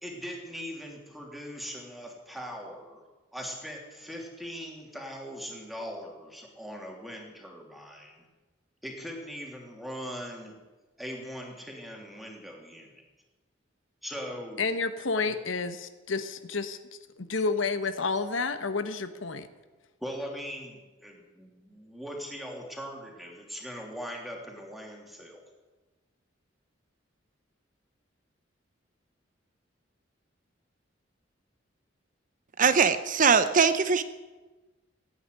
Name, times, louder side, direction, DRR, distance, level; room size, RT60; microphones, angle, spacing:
voice 1, 0.0-3.0 3.3-8.2 8.8-10.6 11.0-13.0 14.0-14.6 15.2-15.3 20.0-25.4, equal, ahead, 0 dB, 3.1 m, -40 dB
voice 2, 14.6-16.8 17.2-19.5, left 4 dB, 80° left, 10 dB, 1.1 m, -30 dB
voice 3, 32.6-34.0, right 5 dB, 45° right, 12 dB, 0.7 m, -21 dB
17.0 x 9.1 x 9.4 m, 1.2 s
head